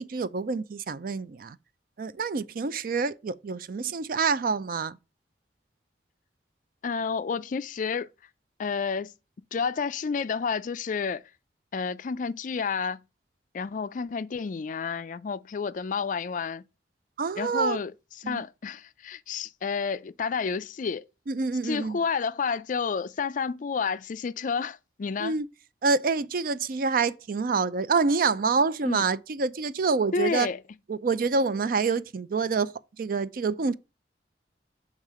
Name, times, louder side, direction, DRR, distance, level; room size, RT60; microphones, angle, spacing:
voice 1, 0.0-1.6 2.0-5.0 17.2-17.8 18.2-18.4 21.3-22.0 25.2-25.5 25.8-30.5 30.9-33.8, right 4 dB, 55° right, 0.4 m, -27 dB
voice 2, 6.8-8.1 8.6-9.1 9.5-11.2 11.7-13.0 13.5-16.6 17.4-17.9 18.2-21.0 21.6-25.3 28.8-29.1 30.1-30.6, left 5 dB, 45° left, 0.4 m, -30 dB
7.3 x 3.7 x 4.8 m
head